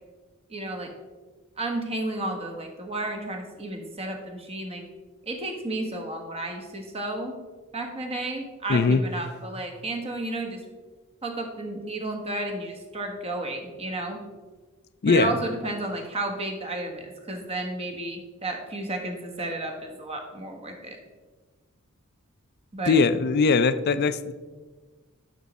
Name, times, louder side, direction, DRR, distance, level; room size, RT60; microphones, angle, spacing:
voice 1, 0.5-0.9 1.6-4.8 5.3-7.4 7.7-10.6 11.2-14.2 15.1-21.0 22.7-23.0, right 2 dB, 30° right, 3 dB, 1.3 m, -32 dB
voice 2, 8.7-9.0 15.0-15.3 22.9-24.3, left 4 dB, 50° left, 14 dB, 0.4 m, -20 dB
10.5 x 6.2 x 4.1 m, 1.3 s
head